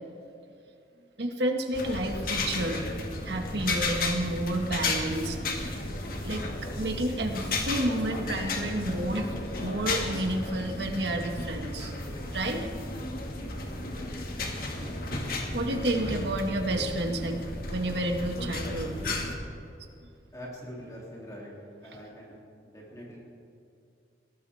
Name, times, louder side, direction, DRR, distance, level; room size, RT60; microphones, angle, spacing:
voice 1, 1.2-2.8 3.2-5.4 6.2-6.5 6.8-9.3 9.6-11.9 12.3-12.7 15.5-17.4 17.7-19.0, right 1 dB, 70° right, 3 dB, 2.0 m, -30 dB
sound 1, 1.7-19.3, left 2 dB, 50° left, 2.1 m, -33 dB
voice 2, 20.3-21.5 21.8-23.3, equal, 20° left, -5 dB, 3.1 m, -44 dB
21.5 x 18.0 x 3.6 m, 2.6 s
head